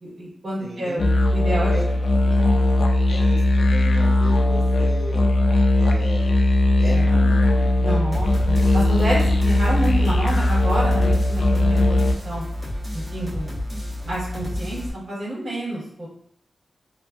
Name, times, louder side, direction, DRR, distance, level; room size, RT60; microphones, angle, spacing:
voice 1, 0.0-1.7 2.1-3.1 7.8-12.0 12.2-12.4 12.9-13.5 14.0-16.1, right 1 dB, 50° right, -9 dB, 1.2 m, -29 dB
voice 2, 0.6-1.0 1.7-1.8 3.1-5.2 5.7-6.3 6.8-7.7, equal, 80° right, -8 dB, 1.3 m, -34 dB
sound 1, 1.0-12.1, left 1 dB, 70° left, 0.3 m, -19 dB
sound 2, 8.1-14.9, left 1 dB, 20° right, 0.9 m, -31 dB
2.5 x 2.4 x 2.2 m, 0.69 s
wide cardioid pair, 100°, 0 cm